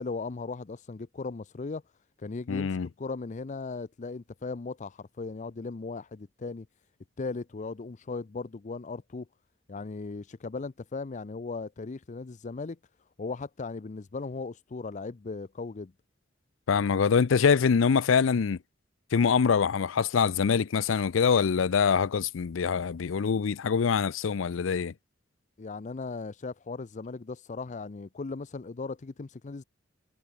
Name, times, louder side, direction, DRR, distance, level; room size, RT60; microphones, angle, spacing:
voice 1, 0.0-1.8 2.2-6.7 7.2-9.3 9.7-12.8 13.2-15.9 25.6-29.6, left 4 dB, 40° left, 0.5 m, -37 dB
voice 2, 2.5-2.9 16.7-18.6 19.1-24.9, left 6 dB, 85° left, 0.5 m, -24 dB
head